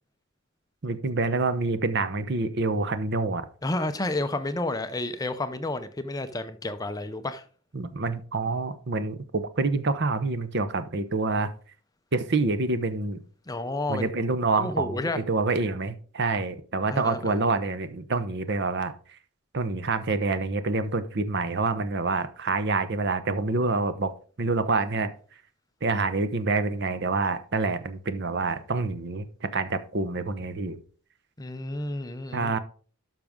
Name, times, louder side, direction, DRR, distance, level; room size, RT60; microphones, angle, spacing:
voice 1, 0.8-3.5 7.7-11.5 12.1-13.2 13.9-18.9 19.5-24.1 24.4-25.1 25.8-30.8 32.3-32.6, right 3 dB, 50° right, 0.8 m, -27 dB
voice 2, 3.6-7.4 13.5-14.1 14.6-15.2 16.9-17.4 31.4-32.5, left 2 dB, 15° left, 0.5 m, -31 dB
12.0 x 5.9 x 3.6 m
head